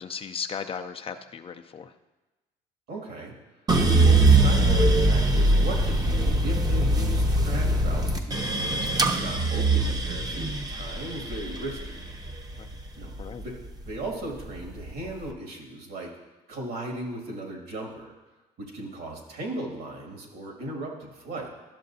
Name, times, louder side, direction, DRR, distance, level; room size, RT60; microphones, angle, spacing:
voice 1, 0.0-1.9 12.6-12.7 13.2-13.4, left 6 dB, 35° left, 7 dB, 0.4 m, -36 dB
voice 2, 2.9-3.3 3.7-12.0 13.0-13.5 13.8-16.1 16.5-18.1 18.6-21.5, right 1 dB, 65° right, 0 dB, 2.1 m, -37 dB
sound 1, 3.7-13.9 14.3-15.1, right 2 dB, 20° right, 0.7 m, -22 dB
12.0 x 6.6 x 2.7 m, 1.1 s
cardioid pair, 110°, 17 cm